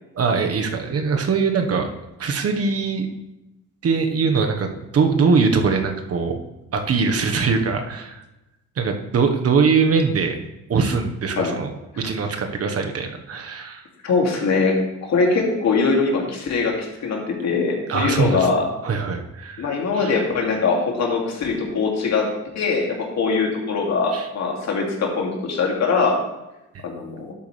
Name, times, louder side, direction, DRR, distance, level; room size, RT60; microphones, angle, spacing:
voice 1, 0.1-1.9 2.2-3.1 3.8-6.3 6.7-8.2 8.8-10.4 10.7-11.7 12.0-13.8 17.9-18.5 18.8-20.2 24.1-24.3, right 5 dB, 50° right, 5 dB, 1.3 m, -22 dB
voice 2, 14.0-18.7 19.6-26.2 26.8-27.3, left 4 dB, 60° left, 0 dB, 2.6 m, -22 dB
11.5 x 8.4 x 3.3 m, 0.95 s
cardioid pair, 90°, 30 cm